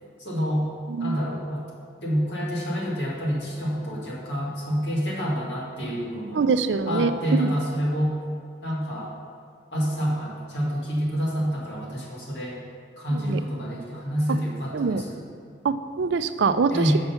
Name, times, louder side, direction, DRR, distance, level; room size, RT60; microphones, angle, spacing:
voice 1, 0.2-0.7 1.0-1.7 2.0-6.4 6.8-8.2 8.6-9.1 9.7-12.6 13.0-15.2 16.7-17.0, equal, 70° left, -4 dB, 2.0 m, -27 dB
voice 2, 6.3-7.5 13.1-13.4 14.7-15.0 15.6-17.0, right 5 dB, 75° right, 11 dB, 0.4 m, -24 dB
6.8 x 5.6 x 6.9 m, 2.2 s
head